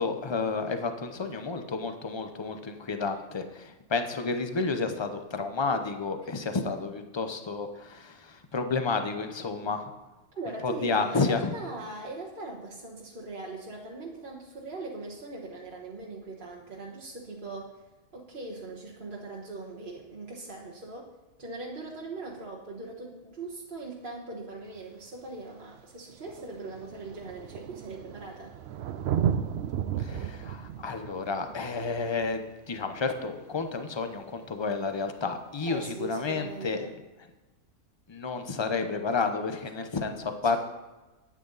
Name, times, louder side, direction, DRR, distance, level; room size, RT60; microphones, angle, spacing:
voice 1, 0.0-9.9 10.6-11.5 30.0-36.9 38.1-40.6, left 4 dB, 30° left, 7 dB, 0.5 m, -31 dB
voice 2, 10.3-17.8 18.1-21.1 21.4-28.5 35.6-36.9 40.4-40.6, right 3 dB, 35° right, -4 dB, 1.3 m, -40 dB
Thunder, 24.7-24.8 25.8-25.9 26.1-33.4 35.1-35.2, right 9 dB, 75° right, 0.6 m, -34 dB
11.5 x 9.1 x 4.0 m, 1.2 s
omnidirectional pair, 1.6 m